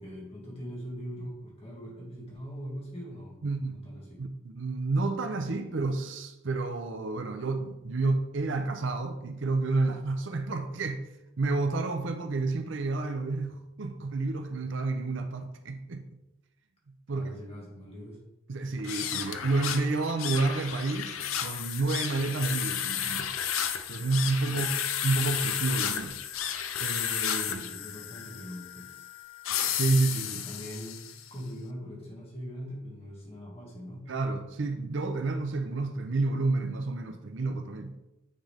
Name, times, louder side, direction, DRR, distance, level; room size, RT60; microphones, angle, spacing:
voice 1, 0.0-4.2 17.1-18.2 24.5-24.6 27.3-29.1 30.4-34.1, equal, 30° left, 2.0 m, -42 dB
voice 2, 3.4-3.8 4.2-11.0 11.4-16.1 17.1-17.3 18.5-23.3 23.9-24.7 25.0-26.2 26.8-27.6 29.7-30.5 34.1-38.0, right 3 dB, 65° right, 0.6 m, -30 dB
sound 1, 18.8-31.3, left 9 dB, 85° left, 0.5 m, -33 dB
8.8 x 3.8 x 3.4 m
head